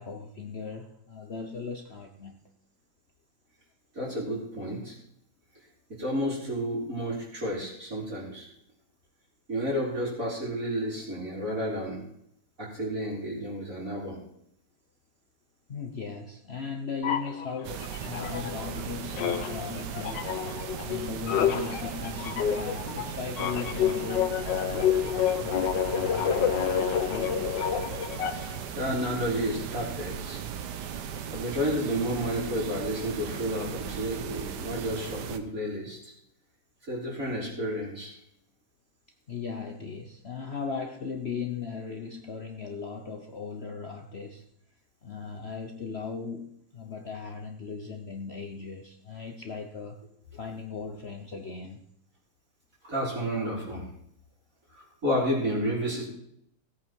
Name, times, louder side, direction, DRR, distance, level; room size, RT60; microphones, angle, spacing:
voice 1, 0.0-2.4 15.7-27.7 39.3-44.5 45.0-50.0 50.3-51.8, left 5 dB, 45° left, 3 dB, 1.0 m, -38 dB
voice 2, 3.9-5.0 5.9-8.5 9.5-12.0 12.6-14.2 28.7-30.4 30.9-31.0 31.3-36.1 36.9-38.1 52.8-53.8 54.7-56.1, equal, 45° right, -5 dB, 5.0 m, -31 dB
sound 1, 17.0-18.8 19.1-28.6, left 9 dB, 85° left, 1.6 m, -29 dB
sound 2, 17.6-35.4, right 8 dB, 75° right, 1.4 m, -37 dB
17.0 x 8.7 x 4.6 m, 0.72 s
omnidirectional pair, 1.9 m